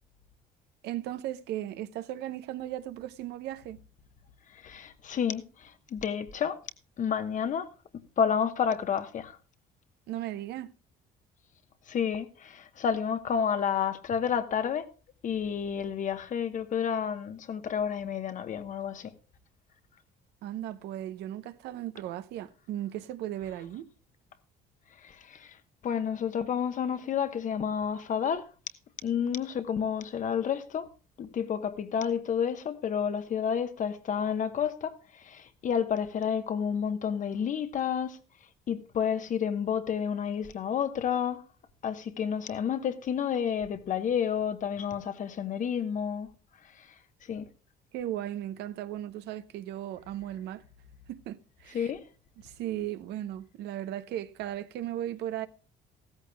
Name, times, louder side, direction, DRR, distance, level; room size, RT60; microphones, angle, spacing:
voice 1, 0.8-3.8 10.1-10.7 20.4-23.9 47.9-50.6 51.1-51.9 52.4-55.5, right 12 dB, 80° right, 0.8 m, -36 dB
voice 2, 4.6-6.6 7.0-7.7 8.2-9.4 11.9-14.9 15.2-19.1 25.0-25.5 25.8-28.4 29.0-30.9 31.2-38.2 38.7-41.4 41.8-46.3 47.3-47.5 51.7-52.0, left 7 dB, 50° left, 1.1 m, -30 dB
15.5 x 14.0 x 2.3 m
cardioid pair, 110°, 17 cm